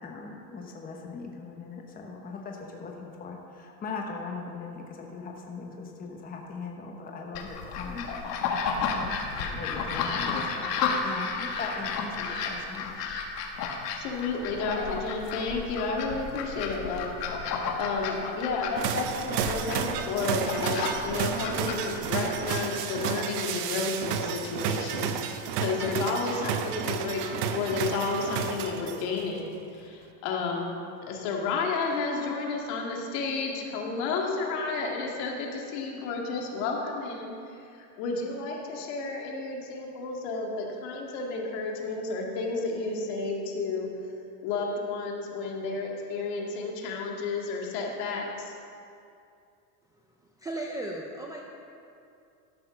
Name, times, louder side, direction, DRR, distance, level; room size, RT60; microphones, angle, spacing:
voice 1, 0.0-8.1 8.9-10.8 11.0-13.0, left 4 dB, 20° left, 1 dB, 1.1 m, -39 dB
sound 1, 7.3-22.5, left 5 dB, 90° left, 1.6 m, -32 dB
voice 2, 14.0-17.1 17.8-30.7 31.1-43.9 44.4-48.5, left 4 dB, 60° left, 0 dB, 2.2 m, -31 dB
sound 2, 18.8-29.2, right 8 dB, 80° right, 0.9 m, -31 dB
voice 3, 49.9-51.4, right 1 dB, 10° right, -1 dB, 0.4 m, -37 dB
13.0 x 6.4 x 6.0 m, 2.5 s
supercardioid pair, 145°, 47 cm